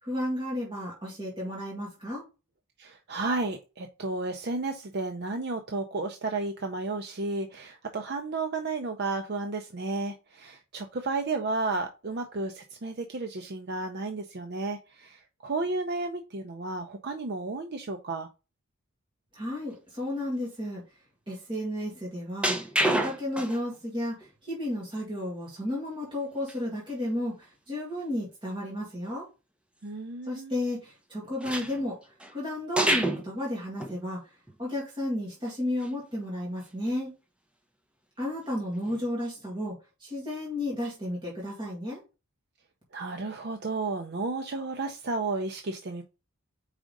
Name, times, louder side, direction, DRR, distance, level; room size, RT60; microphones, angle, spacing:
voice 1, 0.0-2.2 19.3-20.8 21.3-22.6 22.9-29.3 30.3-32.0 32.3-34.2 34.6-37.1 38.2-39.7 40.0-42.0, left 1 dB, 20° right, -5 dB, 2.0 m, -33 dB
voice 2, 2.8-18.3 29.8-30.5 42.9-46.0, right 3 dB, 45° right, 5 dB, 0.5 m, -32 dB
sound 1, 22.4-23.8 24.2-24.3 26.5-26.6 26.9-27.0 27.4-27.5 31.4-32.3 32.8-33.3 33.8-34.0 34.5-34.6 35.8-35.9 36.3-36.6 38.8-39.0, right 1 dB, 5° right, 0.8 m, -28 dB
4.9 x 3.7 x 5.1 m, 0.30 s
head